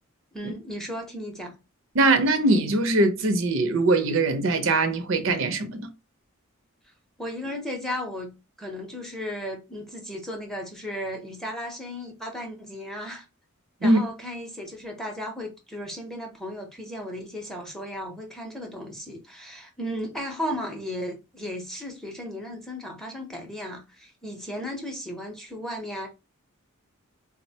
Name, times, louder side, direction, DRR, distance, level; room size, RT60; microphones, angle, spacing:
voice 1, 0.3-1.5 7.2-13.2 13.8-26.1, equal, ahead, 0.6 m, -35 dB
voice 2, 1.9-5.9 13.8-14.0, right 2 dB, 65° right, 0.5 m, -22 dB
3.7 x 2.1 x 2.7 m
head